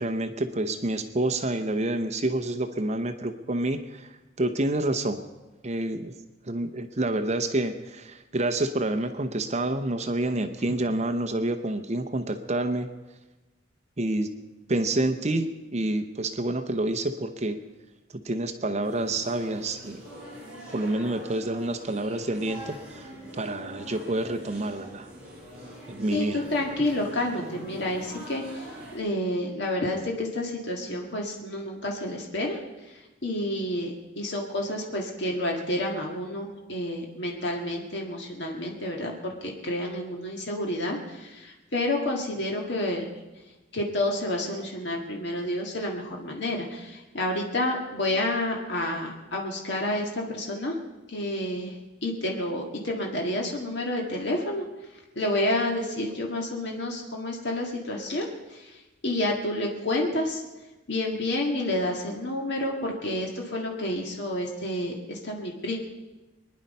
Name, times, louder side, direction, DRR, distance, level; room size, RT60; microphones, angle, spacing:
voice 1, 0.0-4.1 4.4-5.2 5.6-6.1 6.4-12.9 14.0-14.3 14.7-17.6 18.1-20.0 20.7-25.1 25.9-26.5, right 2 dB, 35° right, 8 dB, 0.8 m, -28 dB
sound 1, 18.8-29.0, equal, 5° right, 5.8 m, -43 dB
voice 2, 26.1-28.6 28.9-32.6 33.2-43.1 43.7-50.7 51.1-51.7 52.0-54.6 55.2-58.3 58.5-58.7 59.0-60.4 60.9-65.8, left 1 dB, 60° left, 0 dB, 1.9 m, -29 dB
23.5 x 10.5 x 5.4 m, 1.1 s
head